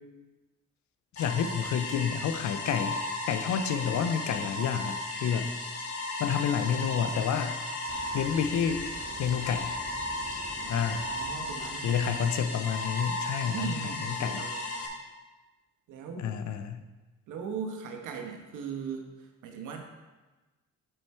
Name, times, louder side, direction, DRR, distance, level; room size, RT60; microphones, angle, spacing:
voice 1, 1.1-3.0 3.3-5.6 6.0-7.6 8.1-8.9 9.2-9.7 10.7-11.1 11.8-13.9 14.2-14.4 16.2-16.8, left 7 dB, 70° left, 9 dB, 0.7 m, -29 dB
sound 1, 1.2-14.9, left 2 dB, 55° left, 1.5 m, -35 dB
Boom, 7.9-12.7, right 3 dB, 50° right, 1.5 m, -47 dB
voice 2, 10.6-12.2 13.5-14.9 15.9-16.4 17.3-19.8, right 6 dB, 85° right, 3 dB, 1.2 m, -39 dB
9.1 x 4.7 x 4.3 m, 1.2 s
cardioid pair, 90°, 30 cm